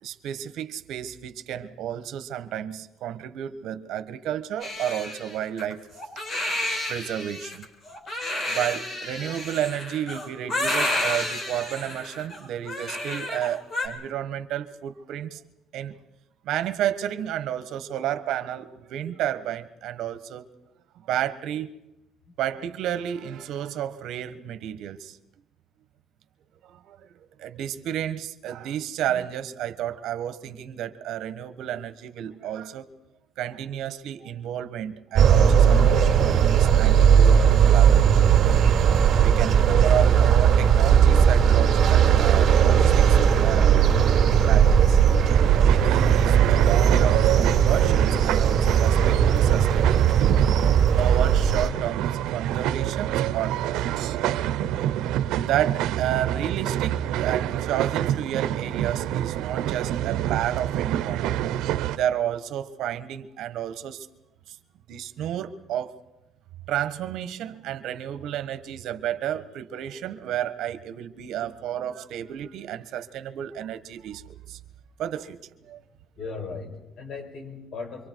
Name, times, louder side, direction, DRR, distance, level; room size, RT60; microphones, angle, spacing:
voice 1, 0.0-5.9 6.9-7.7 8.5-15.4 15.7-15.9 16.4-20.4 21.0-21.7 22.4-25.2 26.6-27.1 27.4-32.9 33.4-38.2 39.2-43.7 44.5-45.0 45.6-54.2 54.7-55.0 55.5-61.4 61.9-64.1 64.5-64.6 64.9-66.0 66.7-74.6 75.0-75.8, right 10 dB, 75° right, 1.4 m, -31 dB
Crying sobbing, 4.6-13.9, left 1 dB, 40° left, 5.1 m, -30 dB
sound 1, 35.1-51.7, right 8 dB, 50° right, 2.7 m, -18 dB
sound 2, 45.3-62.0, right 12 dB, 90° right, 0.8 m, -27 dB
voice 2, 76.2-78.1, left 4 dB, 60° left, 6.0 m, -37 dB
28.5 x 24.0 x 4.7 m
cardioid pair, 130°, 0 cm